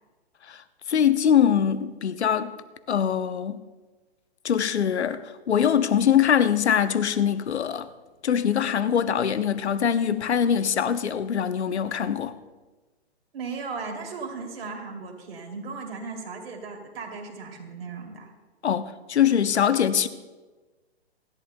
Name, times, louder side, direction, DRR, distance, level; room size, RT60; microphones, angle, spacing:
voice 1, 0.9-2.5 2.9-3.6 4.4-7.9 8.2-12.3 18.6-20.1, left 8 dB, 85° left, 0.8 m, -23 dB
voice 2, 13.3-18.3, right 4 dB, 60° right, 2.8 m, -36 dB
27.5 x 11.0 x 2.2 m
hypercardioid pair, 130°, 32 cm